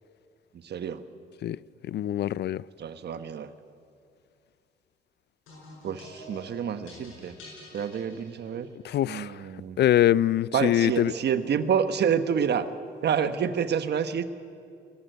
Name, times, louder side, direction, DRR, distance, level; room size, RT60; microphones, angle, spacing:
voice 1, 0.6-1.0 2.8-3.5 5.8-7.3 7.7-8.7 9.1-9.8 10.5-12.7 13.0-14.2, right 7 dB, 55° right, 1.2 m, -28 dB
voice 2, 1.9-2.6 8.8-9.4 9.8-11.1, left 12 dB, 60° left, 0.4 m, -24 dB
sound 1, 5.5-8.8, left 1 dB, 90° left, 7.7 m, -48 dB
22.0 x 14.0 x 9.3 m
cardioid pair, 90°, 20 cm